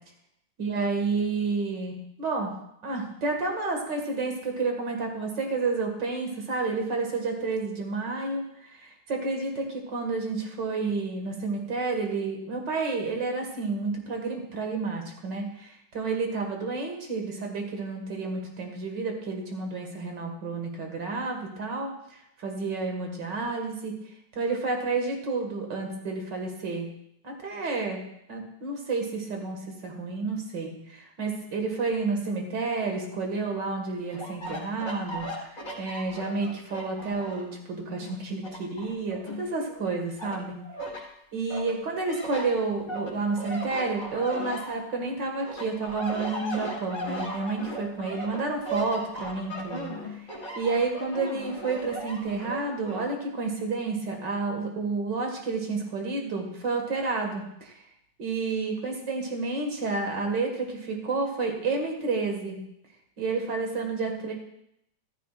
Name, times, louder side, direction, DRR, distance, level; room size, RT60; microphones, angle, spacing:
voice 1, 0.6-2.5 2.8-24.0 24.3-26.9 27.2-28.0 28.3-40.5 41.3-50.2 50.5-57.7 58.2-62.6 63.2-64.3, right 3 dB, 60° right, 2 dB, 2.6 m, -30 dB
sound 1, 34.1-37.6 38.0-39.8 40.2-41.0 41.5-45.1 45.4-53.0, equal, 40° left, 3.7 m, -37 dB
14.5 x 14.0 x 2.5 m, 0.78 s
omnidirectional pair, 2.1 m